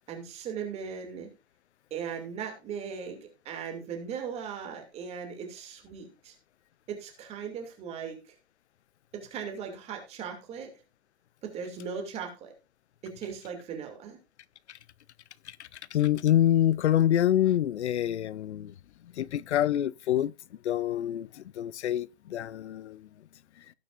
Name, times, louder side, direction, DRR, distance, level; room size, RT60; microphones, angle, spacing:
voice 1, 0.1-1.3 1.9-6.3 6.9-8.3 9.1-10.7 11.4-12.5 13.0-14.2, right 7 dB, 20° right, 2.6 m, -38 dB
voice 2, 15.5-18.7 19.2-20.3 20.6-23.1, left 11 dB, 80° left, 0.6 m, -26 dB
18.0 x 6.9 x 2.5 m
hypercardioid pair, 155°, 33 cm